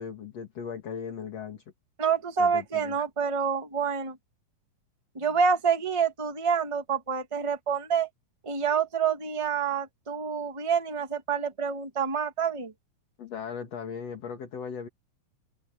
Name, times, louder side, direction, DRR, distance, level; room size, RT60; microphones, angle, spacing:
voice 1, 0.0-1.6 2.4-3.0 5.2-5.4 13.2-14.9, left 6 dB, 50° left, 3.3 m, -38 dB
voice 2, 2.0-4.2 5.1-8.1 8.4-12.7, right 6 dB, 40° right, 0.4 m, -27 dB
open air
omnidirectional pair, 3.8 m